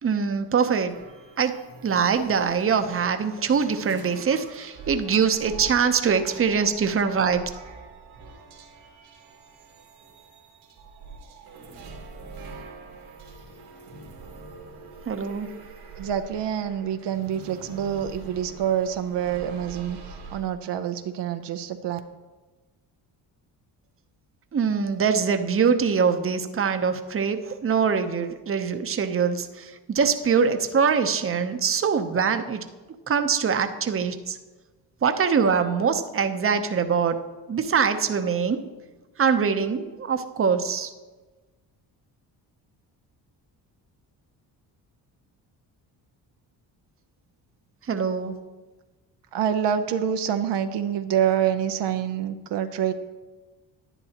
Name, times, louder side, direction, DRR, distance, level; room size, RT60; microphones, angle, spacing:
voice 1, 0.0-0.9 1.4-1.5 1.8-7.4 15.1-15.5 24.5-32.6 33.1-34.4 35.0-37.2 37.5-38.6 39.2-40.9 47.8-48.4, right 6 dB, 30° right, 8 dB, 0.8 m, -23 dB
sound 1, 0.9-20.4, right 3 dB, 85° right, 2.0 m, -44 dB
voice 2, 16.0-22.0 49.3-52.9, right 9 dB, 70° right, 8 dB, 0.7 m, -26 dB
11.0 x 9.6 x 2.9 m, 1.2 s
supercardioid pair, 70°, 45 cm